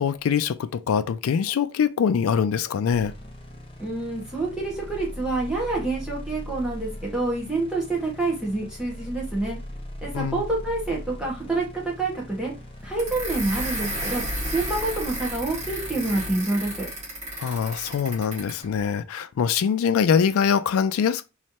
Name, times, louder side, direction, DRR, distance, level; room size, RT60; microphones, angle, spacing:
voice 1, 0.0-3.1 10.1-10.4 17.3-21.3, left 7 dB, 85° left, 0.3 m, -23 dB
sound 1, 2.9-16.4, equal, 25° left, 0.8 m, -39 dB
voice 2, 3.8-9.6 10.0-12.5 12.8-14.2 14.5-16.9, right 2 dB, 5° right, 1.3 m, -27 dB
sound 2, 13.0-18.6, right 1 dB, 30° right, 1.8 m, -33 dB
3.2 x 3.2 x 2.8 m
head